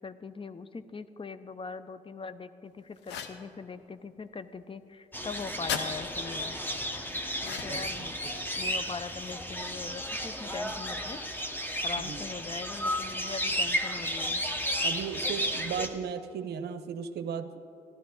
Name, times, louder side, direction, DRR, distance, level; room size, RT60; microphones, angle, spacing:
voice 1, 0.0-6.6 7.4-8.2 8.6-11.2 11.8-14.4, left 4 dB, 30° left, 13 dB, 0.5 m, -41 dB
sound 1, 3.0-3.4 5.7-5.9 7.4-7.9, left 8 dB, 80° left, 0.7 m, -35 dB
sound 2, 5.1-15.9, equal, 10° left, 1.1 m, -33 dB
voice 2, 7.7-8.3 12.1-12.2 14.8-17.5, right 7 dB, 70° right, 11 dB, 0.6 m, -36 dB
12.0 x 12.0 x 3.9 m, 2.8 s
hypercardioid pair, 45°, 18 cm